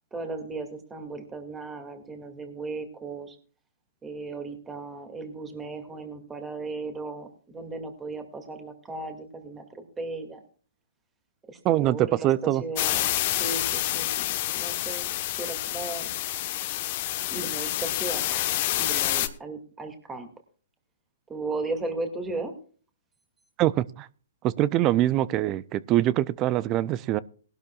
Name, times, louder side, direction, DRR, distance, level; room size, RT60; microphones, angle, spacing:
voice 1, 0.1-3.4 4.0-10.4 11.5-15.1 15.4-16.1 16.6-17.0 17.3-20.3 21.3-22.5, right 3 dB, 15° right, 2.3 m, -36 dB
voice 2, 11.6-12.6 23.6-24.1 24.4-27.2, right 14 dB, 30° right, 0.5 m, -24 dB
sound 1, 12.8-19.3, left 15 dB, 45° left, 1.1 m, -28 dB
19.5 x 12.0 x 2.4 m
hypercardioid pair, 135°, 0 cm